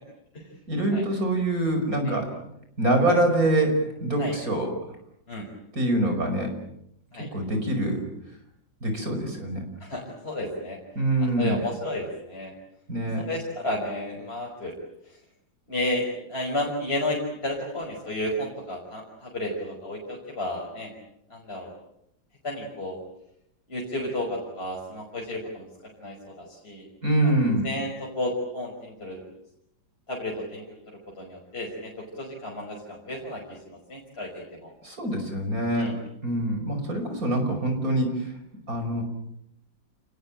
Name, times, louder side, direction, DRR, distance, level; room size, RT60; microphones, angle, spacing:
voice 1, 0.7-2.3 2.8-4.7 5.7-6.5 7.3-8.0 8.8-9.6 11.0-11.6 12.9-13.2 27.0-27.7 34.8-35.9 36.2-38.3 38.7-39.0, right 1 dB, 45° right, 5 dB, 6.0 m, -25 dB
voice 2, 9.8-10.8 11.4-12.5 13.2-14.7 15.7-20.9 21.3-21.7 22.4-23.0 23.7-25.7 26.0-26.9 27.2-27.3 27.6-29.2 30.1-30.8 31.2-34.7 35.8-35.9, left 1 dB, 30° left, -2 dB, 5.9 m, -32 dB
29.0 x 21.0 x 9.1 m, 0.78 s
omnidirectional pair, 2.0 m